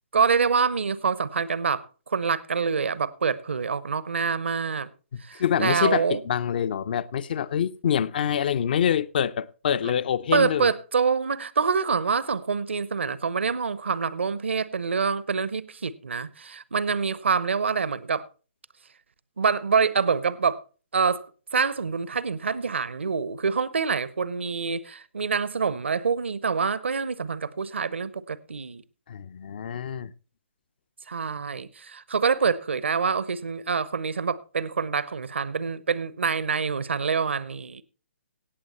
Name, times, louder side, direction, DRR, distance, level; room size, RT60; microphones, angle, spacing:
voice 1, 0.1-4.9 5.3-6.2 10.3-18.3 19.4-20.6 20.9-21.3 21.5-28.8 31.1-37.8, right 5 dB, 70° right, 0.9 m, -26 dB
voice 2, 5.1-10.7 29.1-30.1, left 8 dB, 50° left, 0.6 m, -26 dB
17.5 x 7.6 x 4.3 m
figure-of-eight pair, 135°, 7 cm